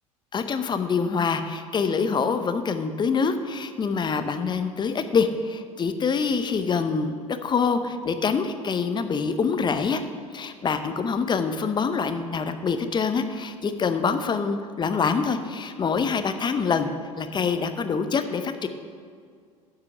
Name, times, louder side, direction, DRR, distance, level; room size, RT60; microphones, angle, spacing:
voice 1, 0.3-7.1 7.4-10.0 10.3-16.9 17.2-18.7, left 5 dB, 25° left, 8 dB, 0.7 m, -25 dB
12.0 x 4.8 x 5.7 m, 2.1 s
figure-of-eight pair, 70°, 18 cm